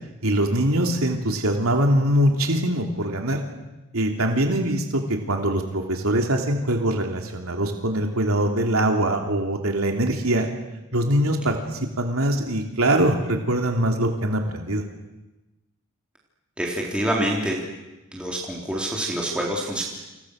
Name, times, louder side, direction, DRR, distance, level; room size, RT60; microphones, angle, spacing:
voice 1, 0.2-3.4 3.9-10.5 10.9-14.8, right 1 dB, 80° right, 3 dB, 3.2 m, -23 dB
voice 2, 16.6-17.6 18.1-19.8, right 1 dB, 5° right, -3 dB, 3.8 m, -26 dB
30.0 x 28.0 x 6.6 m, 1.1 s
head